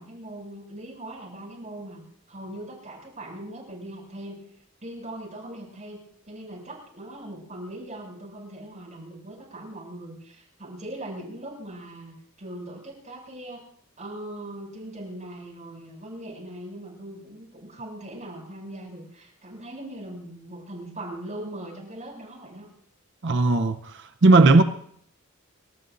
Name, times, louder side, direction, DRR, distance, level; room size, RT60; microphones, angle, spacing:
voice 1, 0.0-2.0 2.3-4.4 4.8-13.6 14.0-22.7, right 1 dB, 35° right, 7.2 m, -40 dB
voice 2, 23.2-23.8 24.2-24.6, right 3 dB, 55° right, 0.7 m, -15 dB
29.0 x 13.5 x 2.6 m
head